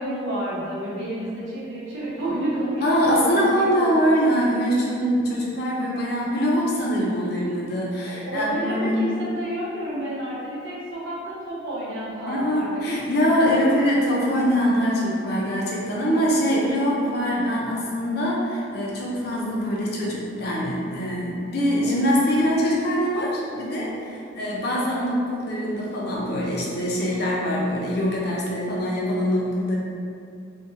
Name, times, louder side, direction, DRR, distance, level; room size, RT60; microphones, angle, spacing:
voice 1, 0.0-4.1 8.0-13.0 13.3-13.9 14.2-14.4, right 1 dB, 70° right, -9 dB, 0.9 m, -30 dB
voice 2, 2.8-9.0 12.3-29.7, equal, 50° left, -4 dB, 0.5 m, -23 dB
2.5 x 2.2 x 2.7 m, 2.4 s
head